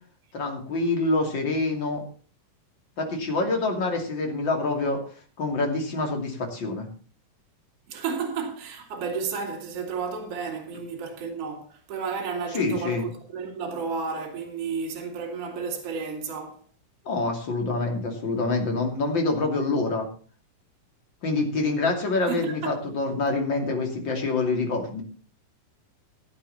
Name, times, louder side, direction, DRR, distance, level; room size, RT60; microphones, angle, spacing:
voice 1, 0.3-2.0 3.0-5.0 5.4-6.9 12.5-13.1 17.0-20.1 21.2-25.0, left 3 dB, 35° left, 3.1 m, -26 dB
voice 2, 7.9-16.6 22.3-22.7, right 5 dB, 45° right, 3.1 m, -32 dB
16.0 x 9.6 x 4.2 m
omnidirectional pair, 4.1 m